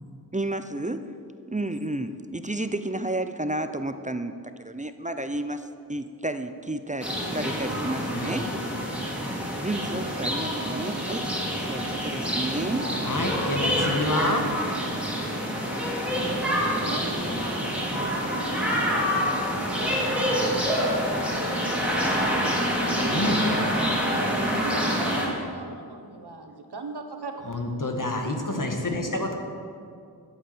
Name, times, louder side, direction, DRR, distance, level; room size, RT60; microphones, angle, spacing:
voice 1, 0.3-1.0 1.5-8.5 9.6-11.3 11.6-12.9, right 1 dB, 20° right, 9 dB, 0.6 m, -31 dB
sound 1, 7.0-25.3, equal, 5° right, 2.8 m, -27 dB
voice 2, 13.0-14.5 23.1-23.4 27.5-29.3, left 2 dB, 50° left, 3 dB, 1.8 m, -28 dB
voice 3, 16.6-20.0 21.4-23.6 24.6-27.4, right 3 dB, 70° right, 4 dB, 1.5 m, -40 dB
12.5 x 8.1 x 7.9 m, 2.4 s
wide cardioid pair, 75°, 41 cm